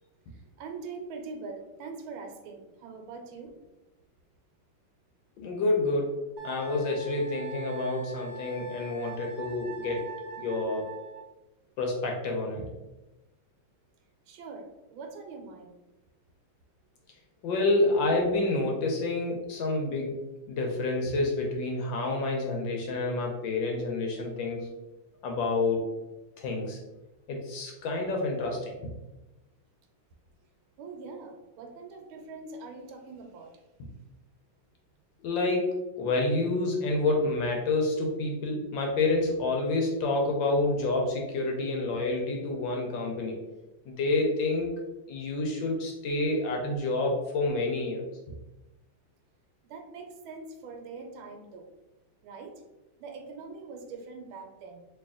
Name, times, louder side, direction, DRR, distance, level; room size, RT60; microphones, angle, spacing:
voice 1, 0.3-3.5 14.3-15.7 30.8-33.5 49.7-51.7 52.2-52.6 53.0-54.8, right 4 dB, 80° right, 3 dB, 1.5 m, -43 dB
voice 2, 5.4-6.2 6.4-10.0 10.4-10.9 11.8-12.7 17.4-20.2 20.5-24.7 25.2-25.8 26.4-26.8 27.3-28.8 35.2-35.7 36.0-43.4 43.9-44.7 45.1-48.0, left 2 dB, 75° left, 0 dB, 1.2 m, -28 dB
Wind instrument woodwind instrument, 6.4-11.2, right 4 dB, 45° right, 1.0 m, -43 dB
3.2 x 2.7 x 3.5 m, 1.1 s
omnidirectional pair, 2.3 m